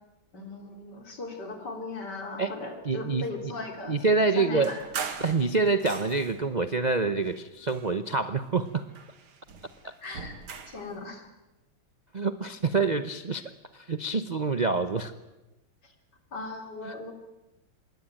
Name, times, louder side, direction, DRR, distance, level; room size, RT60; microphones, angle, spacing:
voice 1, 0.3-3.9 4.4-4.8 10.0-10.4 10.7-11.3 15.8-15.9 16.3-17.1, left 3 dB, 55° left, 4 dB, 4.1 m, -38 dB
voice 2, 2.8-3.3 3.9-4.7 5.2-8.9 9.8-9.9 12.1-15.1, right 4 dB, 40° right, 11 dB, 0.6 m, -26 dB
sound 1, 4.6-6.5 7.2-8.3 8.7-10.9, right 6 dB, 80° right, 2.7 m, -40 dB
26.5 x 21.5 x 9.0 m, 1.0 s
omnidirectional pair, 2.2 m